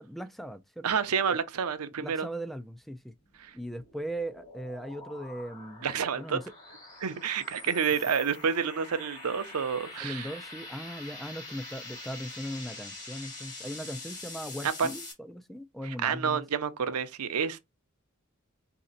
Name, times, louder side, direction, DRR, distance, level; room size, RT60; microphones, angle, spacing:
voice 1, 0.0-0.9 2.0-3.1 3.5-5.8 6.2-6.5 10.0-16.5, equal, ahead, 0.3 m, -39 dB
voice 2, 0.8-2.3 3.4-3.5 5.8-6.4 7.0-10.3 14.6-14.9 16.0-17.6, right 6 dB, 85° right, 0.6 m, -29 dB
sound 1, 3.2-15.1, left 2 dB, 35° left, 2.3 m, -45 dB
4.1 x 2.8 x 3.8 m
head